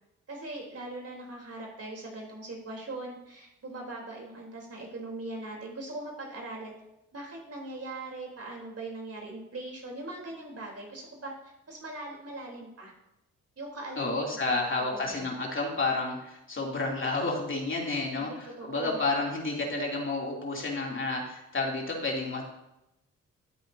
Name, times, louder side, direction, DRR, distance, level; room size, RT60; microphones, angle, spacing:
voice 1, 0.3-6.7 7.1-12.9 13.6-14.2 14.5-14.6 14.9-15.3 18.2-19.0, right 2 dB, 45° right, -1 dB, 3.6 m, -40 dB
voice 2, 14.0-22.4, left 3 dB, 35° left, -2 dB, 3.0 m, -30 dB
13.0 x 8.4 x 2.8 m, 0.89 s
hypercardioid pair, 50°, 34 cm